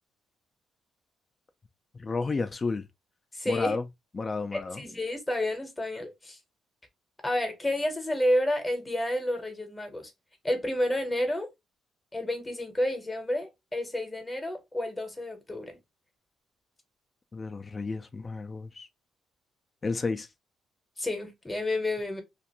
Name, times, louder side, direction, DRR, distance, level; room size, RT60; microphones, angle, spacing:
voice 1, 1.9-2.8 3.5-3.8 4.1-4.8 17.3-18.9 19.8-20.3, left 3 dB, 30° left, 0.4 m, -31 dB
voice 2, 3.3-3.8 4.5-6.4 7.2-10.1 10.4-11.5 12.1-15.8 21.0-22.2, left 1 dB, 10° left, 0.9 m, -30 dB
2.5 x 2.5 x 2.9 m
cardioid pair, 105°, 0 cm